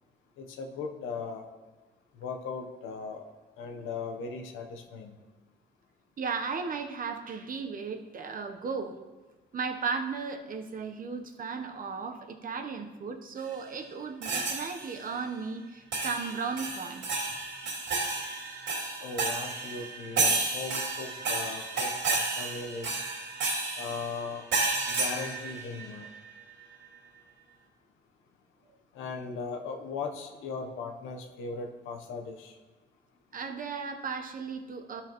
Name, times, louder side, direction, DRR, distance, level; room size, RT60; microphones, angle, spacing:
voice 1, 0.4-1.5 2.2-5.2 19.0-23.1 23.8-24.5 24.9-26.1 28.9-32.6, left 4 dB, 90° left, 4 dB, 0.9 m, -38 dB
voice 2, 6.2-9.0 9.5-17.0 33.3-35.0, right 5 dB, 45° right, 5 dB, 0.9 m, -35 dB
sound 1, 14.2-15.0 15.9-26.2, right 3 dB, 70° right, 2.5 m, -32 dB
12.0 x 4.9 x 3.0 m, 1.2 s
cardioid pair, 90°, 20 cm